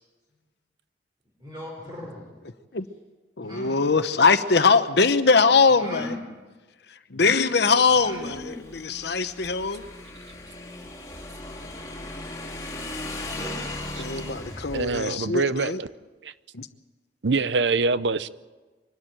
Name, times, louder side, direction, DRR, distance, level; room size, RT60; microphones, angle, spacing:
voice 1, 1.4-2.3 3.4-3.9 5.7-6.2 8.0-8.7 13.3-13.6, left 1 dB, 25° right, 4.2 m, -37 dB
voice 2, 3.4-6.2 6.9-9.8 14.0-15.8 16.5-16.7, left 4 dB, 70° left, 1.0 m, -22 dB
Motorcycle / Engine, 8.0-15.0, left 2 dB, 20° left, 3.0 m, -37 dB
voice 3, 14.7-15.9 16.2-16.3 17.2-18.3, right 4 dB, 85° right, 0.7 m, -24 dB
24.0 x 12.5 x 9.0 m
head